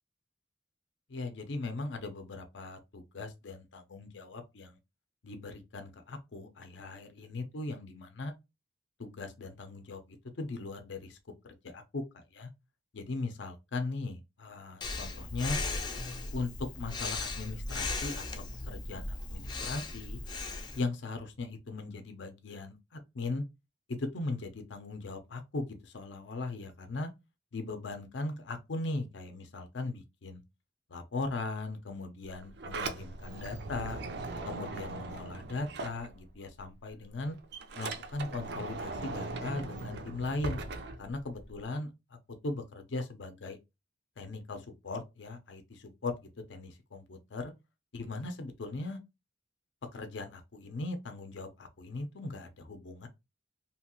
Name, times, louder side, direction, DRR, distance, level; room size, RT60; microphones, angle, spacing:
voice 1, 1.1-4.8 5.2-8.3 9.0-10.0 10.4-11.2 11.6-12.5 12.9-15.6 16.3-20.2 20.7-23.4 23.9-27.1 27.5-30.4 30.9-34.0 34.4-37.3 37.8-40.6 41.0-41.9 42.4-43.6 44.2-46.1 46.5-47.0 47.3-47.4 47.9-49.0 49.9-53.1, left 3 dB, 75° left, 0.6 m, -38 dB
Breathing, 14.8-20.8, left 3 dB, 25° left, 0.4 m, -37 dB
Sliding door, 32.3-36.6 36.9-41.6, right 3 dB, 60° right, 0.4 m, -40 dB
2.9 x 2.3 x 2.9 m
head